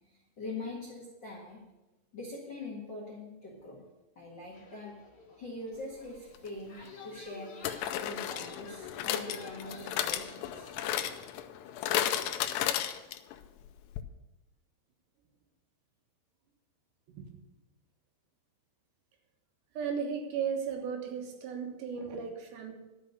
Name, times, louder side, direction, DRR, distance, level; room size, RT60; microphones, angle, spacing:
voice 1, 0.4-1.6 2.1-3.8 4.1-5.0 5.4-7.5 8.0-10.7, left 2 dB, 65° left, -3 dB, 1.1 m, -43 dB
sound 1, 4.5-10.7, left 4 dB, 35° left, 1.9 m, -50 dB
sound 2, 6.4-6.5 7.6-13.4 13.7-13.8 14.0-14.1, left 11 dB, 85° left, 2.6 m, -33 dB
voice 2, 19.8-22.7, right 6 dB, 75° right, 3 dB, 3.4 m, -35 dB
11.5 x 6.4 x 6.7 m, 1.0 s
omnidirectional pair, 5.2 m